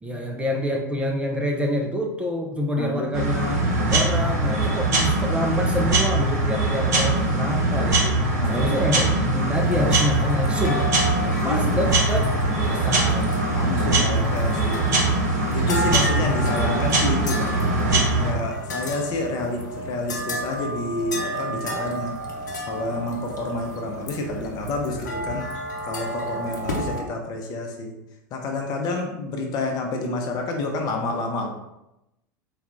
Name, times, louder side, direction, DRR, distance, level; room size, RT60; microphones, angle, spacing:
voice 1, 0.0-8.2 8.5-10.9 11.2-12.3 12.7-13.4, left 1 dB, 10° right, 1 dB, 0.5 m, -27 dB
voice 2, 2.8-3.1 8.4-8.7 10.6-10.9 11.4-11.8 13.5-22.2 22.7-25.5 25.9-27.9 28.3-31.5, left 2 dB, 40° left, 3 dB, 0.7 m, -29 dB
sound 1, 3.1-18.3, right 2 dB, 65° right, 0.9 m, -22 dB
sound 2, 9.5-27.0, equal, 75° left, 0.7 m, -32 dB
4.2 x 2.3 x 3.5 m, 0.88 s
figure-of-eight pair, 80°, 10 cm